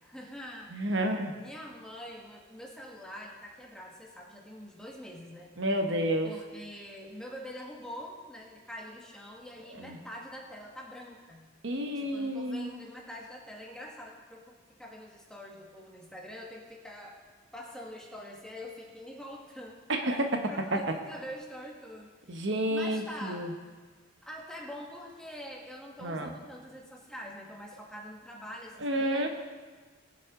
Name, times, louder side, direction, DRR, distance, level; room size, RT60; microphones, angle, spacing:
voice 1, 0.0-1.0 1.3-5.5 6.2-11.5 11.9-17.2 17.5-19.8 20.5-22.1 22.7-23.5 24.2-29.3, equal, 5° left, -2 dB, 1.6 m, -45 dB
voice 2, 0.7-1.4 5.6-6.3 9.7-10.0 11.6-12.7 19.9-20.8 22.3-23.5 26.0-26.3 28.8-29.3, right 1 dB, 65° right, 4 dB, 1.1 m, -30 dB
21.0 x 7.6 x 3.8 m, 1.4 s
head